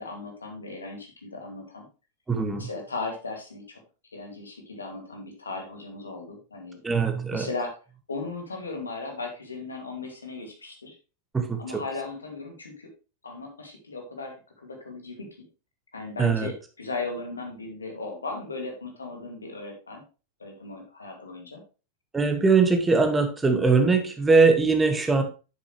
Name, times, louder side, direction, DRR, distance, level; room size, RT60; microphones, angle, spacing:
voice 1, 0.0-1.9 2.6-3.8 4.1-6.8 7.3-7.7 8.1-11.0 11.6-12.9 13.2-15.3 15.9-20.0 20.4-21.6, left 3 dB, 75° left, 3 dB, 2.4 m, -37 dB
voice 2, 2.3-2.7 6.8-7.5 11.3-11.8 16.2-16.5 22.1-25.2, right 4 dB, 10° right, 6 dB, 1.6 m, -21 dB
8.9 x 7.2 x 3.2 m, 0.32 s
figure-of-eight pair, 90°, 0 cm